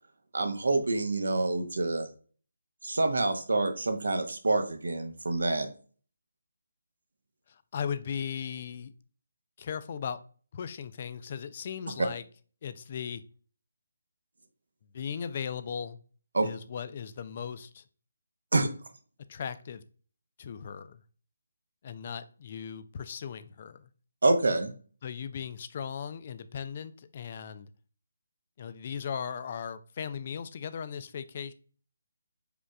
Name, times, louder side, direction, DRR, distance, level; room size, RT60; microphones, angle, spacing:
voice 1, 0.3-2.1 2.8-5.7 16.3-16.5 18.5-18.7 24.2-24.7, right 2 dB, 65° right, 7 dB, 0.8 m, -27 dB
voice 2, 7.5-8.9 9.6-10.2 10.5-12.2 12.6-13.2 14.9-16.0 16.4-17.8 19.3-19.8 20.4-21.0 21.8-23.9 25.0-27.7 28.6-31.5, left 7 dB, 40° left, 13 dB, 0.3 m, -37 dB
5.0 x 4.6 x 2.2 m, 0.41 s
figure-of-eight pair, 150°, 0 cm